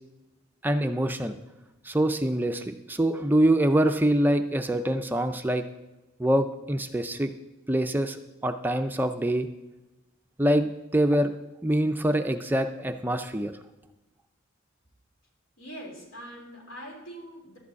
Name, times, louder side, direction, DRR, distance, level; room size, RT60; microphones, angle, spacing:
voice 1, 0.6-1.4 1.8-5.6 6.2-7.3 7.7-8.2 8.4-9.5 10.4-11.3 11.6-13.5, right 1 dB, 10° right, 7 dB, 0.4 m, -25 dB
voice 2, 15.6-17.6, equal, 80° left, -1 dB, 3.5 m, -43 dB
12.0 x 5.0 x 8.1 m, 1.0 s
head